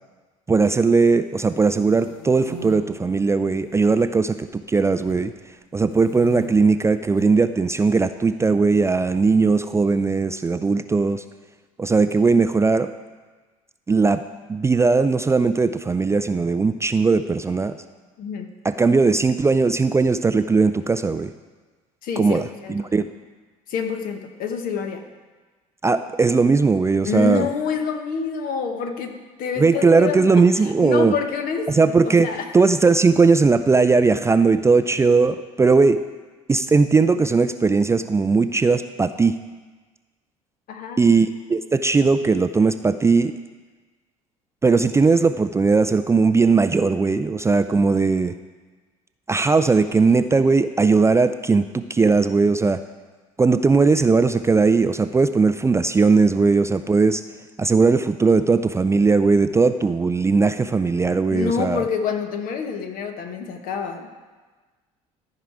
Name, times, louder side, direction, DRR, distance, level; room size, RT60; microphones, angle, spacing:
voice 1, 0.5-5.3 5.7-11.2 11.8-12.9 13.9-14.2 14.5-17.8 18.6-21.3 22.2-23.1 25.8-27.5 29.6-31.1 31.7-36.0 36.5-39.4 41.0-43.4 44.6-48.3 49.3-52.8 53.4-57.2 57.6-61.8, right 4 dB, 15° right, 10 dB, 0.4 m, -18 dB
sound 1, 1.3-2.7 3.4-4.0 4.3-5.3 5.9-6.5 7.0-7.3 8.4-9.3, left 4 dB, 90° left, 0.9 m, -41 dB
voice 2, 18.2-18.5 22.0-22.9 23.7-25.0 27.0-32.5 40.7-41.0 61.3-64.1, left 6 dB, 55° left, 6 dB, 1.1 m, -27 dB
13.0 x 4.9 x 4.7 m, 1.3 s
hypercardioid pair, 65°, 17 cm